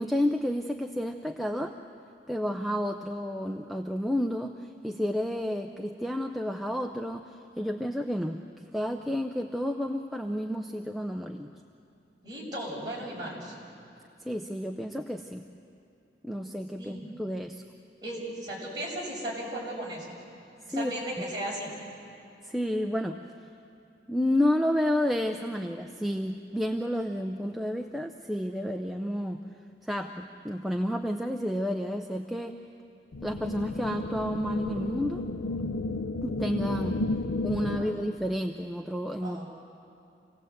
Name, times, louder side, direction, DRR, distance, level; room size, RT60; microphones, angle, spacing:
voice 1, 0.0-1.8 2.3-11.5 14.2-15.5 16.2-17.6 20.7-20.9 22.4-23.2 24.1-29.4 29.8-32.6 33.2-35.2 36.2-37.0 37.4-39.5, equal, ahead, 3 dB, 0.6 m, -30 dB
voice 2, 12.2-13.5 16.8-17.1 18.0-20.1 20.6-21.7 37.8-37.9 39.2-39.5, right 1 dB, 25° right, -5 dB, 6.1 m, -36 dB
sound 1, 33.1-38.1, left 2 dB, 90° left, 0.6 m, -32 dB
27.0 x 18.0 x 8.0 m, 2.6 s
head